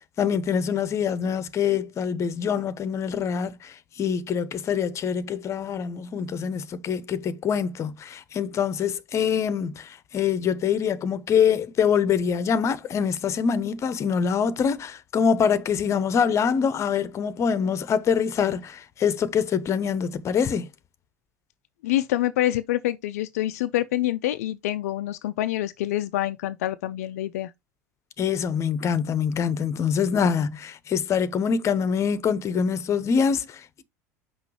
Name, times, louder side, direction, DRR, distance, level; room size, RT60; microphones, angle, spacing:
voice 1, 0.2-20.7 28.2-33.8, left 7 dB, 30° left, 0.8 m, -25 dB
voice 2, 21.8-27.5, left 14 dB, 60° left, 0.4 m, -26 dB
5.9 x 5.5 x 3.0 m
figure-of-eight pair, 75°, 9 cm